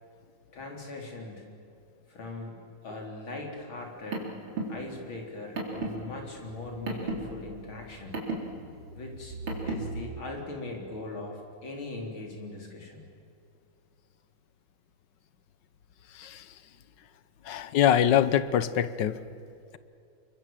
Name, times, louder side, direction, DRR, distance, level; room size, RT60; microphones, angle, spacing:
voice 1, 0.5-1.5 2.1-2.6 2.8-4.4 4.7-8.2 8.9-9.4 9.6-13.0, left 2 dB, 85° left, 1 dB, 4.7 m, -40 dB
Car, 3.8-10.0, right 2 dB, 75° right, 4.5 m, -36 dB
voice 2, 17.5-19.2, left 10 dB, 65° left, 14 dB, 1.5 m, -23 dB
28.5 x 23.5 x 7.5 m, 2.5 s
omnidirectional pair, 2.2 m